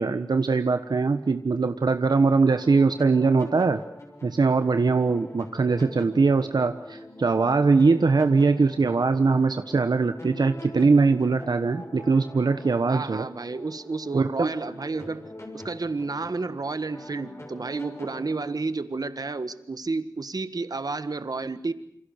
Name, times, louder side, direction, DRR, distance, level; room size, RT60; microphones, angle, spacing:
voice 1, 0.0-3.8 4.2-13.3 14.1-14.5, right 4 dB, 85° right, 8 dB, 1.2 m, -21 dB
sound 1, 2.4-18.6, left 1 dB, 40° left, 6.7 m, -43 dB
voice 2, 12.8-15.2 15.5-21.7, right 3 dB, 65° right, 12 dB, 1.6 m, -31 dB
28.5 x 26.5 x 6.6 m, 0.71 s
wide cardioid pair, 75°, 7 cm